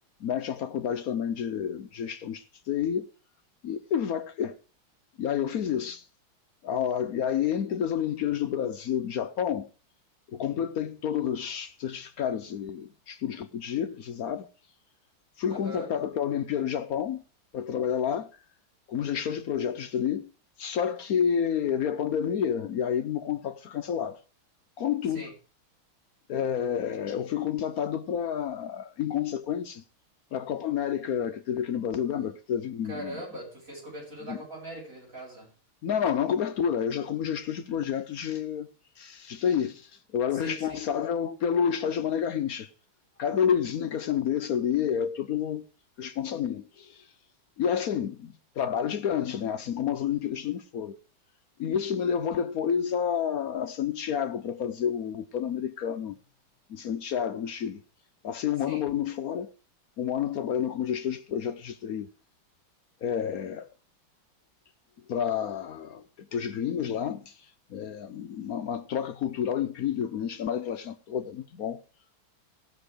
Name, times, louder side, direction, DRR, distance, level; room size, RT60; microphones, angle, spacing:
voice 1, 0.2-3.1 3.6-4.6 5.2-6.1 6.6-9.7 10.3-14.5 15.4-17.2 17.5-18.3 18.9-20.3 20.6-24.2 24.8-25.3 26.3-29.8 30.3-33.2 34.3-34.4 35.8-38.7 39.0-42.7 43.2-45.6 46.0-47.0 47.6-51.0 51.6-56.2 56.7-57.8 58.2-59.5 60.0-62.1 63.0-63.7 65.1-66.0 66.3-67.4 67.7-71.8, left 8 dB, 70° left, 0.8 m, -29 dB
voice 2, 15.5-15.9 25.1-25.3 32.9-35.5 40.3-40.8 58.7-58.8, right 1 dB, 35° right, 8.2 m, -40 dB
16.5 x 6.7 x 5.0 m
omnidirectional pair, 2.4 m